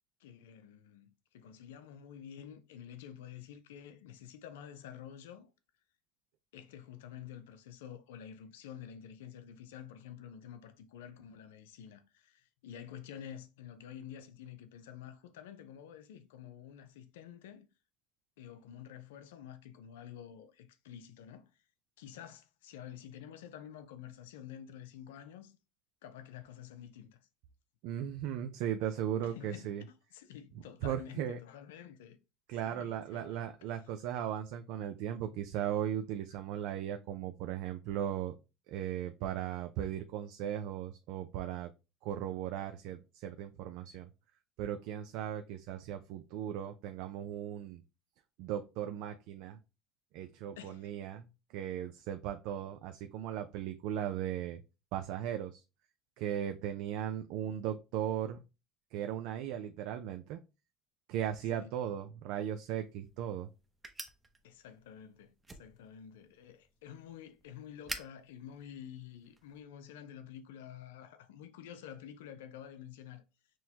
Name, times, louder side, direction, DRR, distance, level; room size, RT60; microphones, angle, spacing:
voice 1, 0.2-5.5 6.5-17.7 18.4-21.6 22.0-25.6 26.0-27.2 29.2-29.8 30.1-32.2 32.6-33.9 36.3-36.4 50.6-50.9 61.5-61.7 64.4-73.2, left 9 dB, 90° left, 0.4 m, -49 dB
voice 2, 27.8-29.8 30.8-31.4 32.5-38.3 38.7-41.7 42.0-44.1 44.6-47.8 48.4-49.6 50.1-54.6 54.9-55.6 56.2-58.4 58.9-60.4 61.1-63.5, right 10 dB, 70° right, 0.4 m, -37 dB
sound 1, 62.5-69.6, right 3 dB, 15° right, 0.7 m, -50 dB
6.1 x 2.1 x 2.8 m
supercardioid pair, 95°, 0 cm